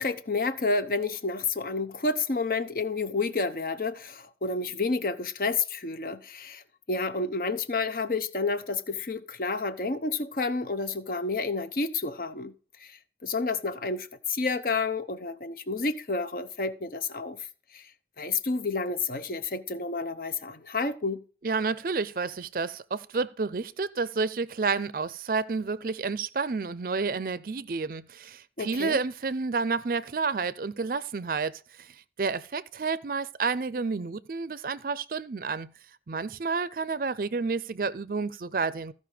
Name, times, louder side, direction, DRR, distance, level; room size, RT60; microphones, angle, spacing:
voice 1, 0.0-6.6 6.9-12.5 12.8-17.4 17.7-17.9 18.2-21.2 28.6-29.0, left 3 dB, 55° left, 0.8 m, -30 dB
voice 2, 21.4-35.7 36.1-38.9, right 4 dB, 50° right, 0.5 m, -30 dB
14.5 x 5.4 x 4.9 m
head